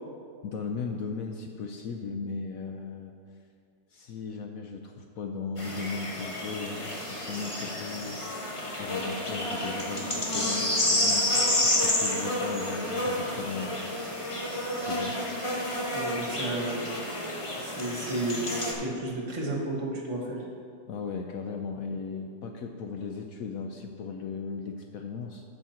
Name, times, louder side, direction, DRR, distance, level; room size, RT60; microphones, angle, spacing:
voice 1, 0.4-3.1 3.9-8.2 8.8-11.3 11.6-13.7 14.8-15.2 20.9-25.4, left 5 dB, 65° left, 4 dB, 0.9 m, -37 dB
sound 1, 5.6-18.7, left 1 dB, 20° left, 0.9 m, -30 dB
voice 2, 15.9-16.9 17.6-20.5, right 1 dB, 45° right, 0 dB, 1.7 m, -32 dB
13.5 x 5.6 x 4.3 m, 2.2 s
omnidirectional pair, 2.0 m